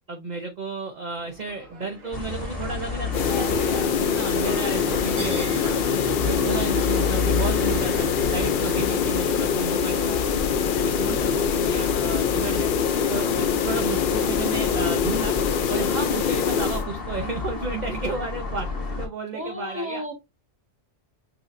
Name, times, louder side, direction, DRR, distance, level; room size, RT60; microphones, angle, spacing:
voice 1, 0.1-5.8 6.2-10.2 10.6-12.7 13.1-15.4 15.7-20.0, right 4 dB, 40° right, 3 dB, 0.8 m, -32 dB
Livestock farm animals working animals, 1.1-17.6, right 2 dB, 70° right, 1.6 m, -42 dB
sound 1, 2.1-19.1, left 4 dB, 15° left, 1.9 m, -31 dB
sound 2, 3.1-16.8, left 7 dB, 60° left, 0.5 m, -24 dB
voice 2, 6.2-6.7 11.1-11.3 19.3-20.1, equal, 10° right, 1 dB, 1.5 m, -34 dB
6.8 x 2.9 x 2.5 m, 0.21 s
omnidirectional pair, 1.3 m